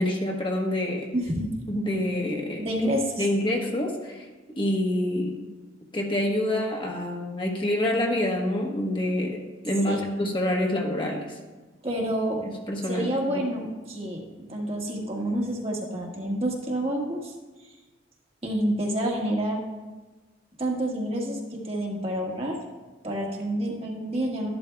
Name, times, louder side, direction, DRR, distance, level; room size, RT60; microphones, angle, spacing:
voice 1, 0.0-1.1 1.7-2.7 3.2-4.3 4.5-5.4 5.9-11.4 12.4-13.4, left 1 dB, 25° left, 0 dB, 1.1 m, -27 dB
voice 2, 1.1-1.5 2.6-3.2 9.9-10.0 11.8-12.4 12.9-14.2 14.5-17.3 18.4-19.6 20.6-22.6 23.0-24.5, right 1 dB, 30° right, -1 dB, 1.5 m, -28 dB
13.0 x 11.0 x 2.3 m, 1.2 s
head